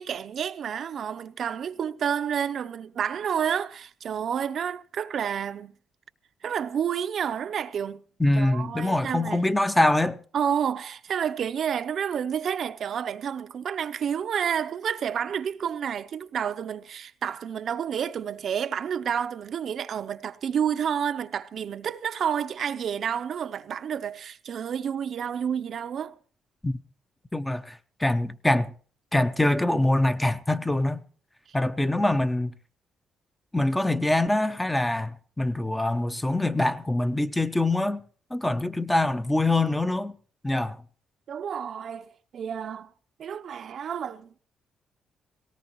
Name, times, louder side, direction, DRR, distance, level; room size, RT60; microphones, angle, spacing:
voice 1, 0.0-5.7 6.4-8.0 8.4-9.4 10.3-26.2 41.3-42.1 42.3-42.9 43.2-44.4, right 8 dB, 60° right, 0.6 m, -30 dB
voice 2, 8.2-10.2 26.6-26.8 27.3-28.7 29.1-31.0 31.5-32.5 33.5-38.0 38.3-40.1 40.4-40.8, left 1 dB, 10° left, 0.7 m, -24 dB
18.5 x 17.5 x 3.0 m
cardioid pair, 90°, 0 cm